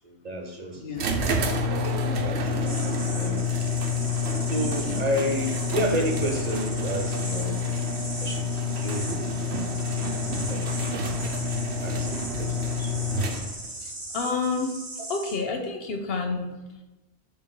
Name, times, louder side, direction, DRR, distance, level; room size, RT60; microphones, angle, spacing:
voice 1, 0.0-0.8 2.2-3.4 4.5-7.6 8.2-9.4 9.9-10.2 10.5-11.0 11.8-12.9, equal, 45° right, 1 dB, 0.8 m, -31 dB
voice 2, 0.7-1.1 2.5-2.6 4.2-5.0 13.8-14.8 15.1-16.6, left 4 dB, 70° left, 4 dB, 1.0 m, -30 dB
sound 1, 1.0-13.8, left 3 dB, 90° right, 1.0 m, -28 dB
sound 2, 2.6-15.3, right 1 dB, 20° right, 1.0 m, -38 dB
7.3 x 3.5 x 3.8 m, 1.0 s
omnidirectional pair, 1.1 m